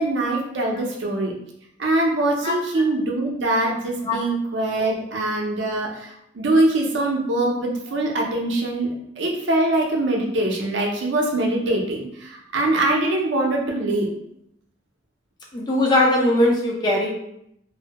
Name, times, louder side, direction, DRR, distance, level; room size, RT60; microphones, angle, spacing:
voice 1, 0.0-1.3 1.8-14.1, right 2 dB, 70° right, 0 dB, 0.5 m, -23 dB
voice 2, 15.5-17.1, left 1 dB, 20° left, -2 dB, 0.4 m, -19 dB
2.6 x 2.1 x 2.8 m, 0.76 s
head